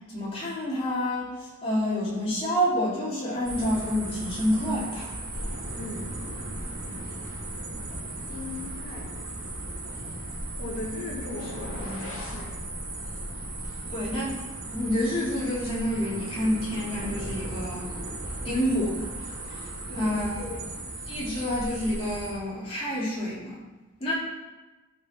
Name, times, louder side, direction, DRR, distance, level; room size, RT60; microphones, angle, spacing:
voice 1, 0.1-5.2 6.9-7.0 13.9-14.3 14.7-17.9 18.4-19.1 19.5-19.7 19.9-20.5 21.1-23.6 24.0-24.1, equal, 25° left, -7 dB, 3.3 m, -28 dB
sound 1, 3.4-22.3, right 1 dB, 70° right, 3.1 m, -36 dB
voice 2, 5.8-6.1 6.5-7.1 7.7-9.2 9.4-9.7 10.0-14.1 19.9-20.7 21.1-21.4, left 2 dB, 45° left, -3 dB, 2.3 m, -40 dB
sound 2, 11.2-12.5, left 2 dB, 60° left, 1.8 m, -39 dB
12.5 x 5.7 x 4.5 m, 1.2 s
head